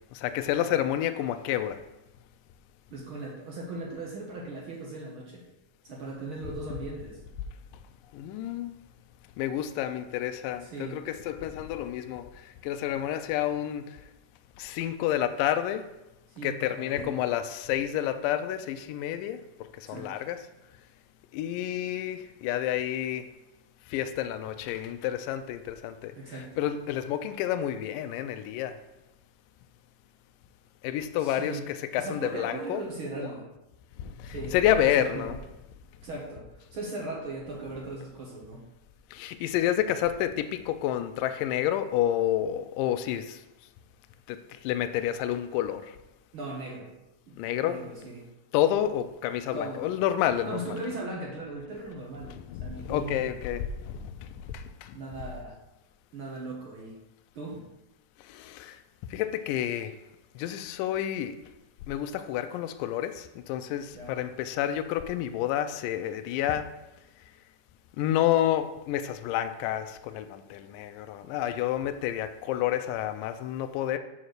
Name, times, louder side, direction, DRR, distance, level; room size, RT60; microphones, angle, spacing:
voice 1, 0.2-1.8 8.1-8.8 9.4-12.3 12.6-13.9 14.6-15.8 16.4-19.4 19.9-20.4 21.3-23.3 23.9-26.1 26.6-28.8 30.8-32.8 33.2-33.3 34.0-35.4 39.1-43.4 44.3-44.4 44.6-45.9 47.4-47.8 48.5-50.6 52.5-53.7 54.0-54.1 54.5-55.0 58.3-58.8 59.1-59.9 60.4-61.4 61.9-66.7 68.0-74.0, left 11 dB, 80° left, 2.1 m, -29 dB
voice 2, 2.9-5.4 5.8-7.2 10.6-11.0 16.3-17.1 19.8-20.2 26.1-26.7 31.2-31.7 31.9-33.5 34.2-35.3 36.0-38.6 46.3-46.9 47.3-48.3 49.5-49.9 50.4-53.3 54.9-55.6 56.1-57.0 57.3-57.7 63.9-64.2, right 2 dB, 60° right, 1.4 m, -38 dB
6.8 x 4.2 x 6.5 m
omnidirectional pair, 4.0 m